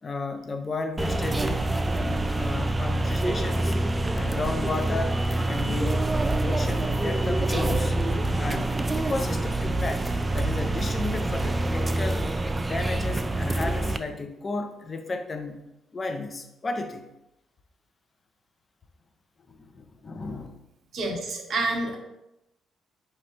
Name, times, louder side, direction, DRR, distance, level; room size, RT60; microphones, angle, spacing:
voice 1, 0.0-1.6 2.0-3.7 4.1-5.2 5.5-6.1 6.4-7.9 8.4-15.6 15.9-17.1 19.5-20.5, left 3 dB, 40° left, 6 dB, 0.6 m, -33 dB
sound 1, 1.0-14.0, right 2 dB, 25° right, 0.3 m, -26 dB
voice 2, 20.9-22.0, right 2 dB, 60° right, 1 dB, 0.9 m, -28 dB
5.1 x 2.9 x 2.9 m, 0.88 s
hypercardioid pair, 45°, 0 cm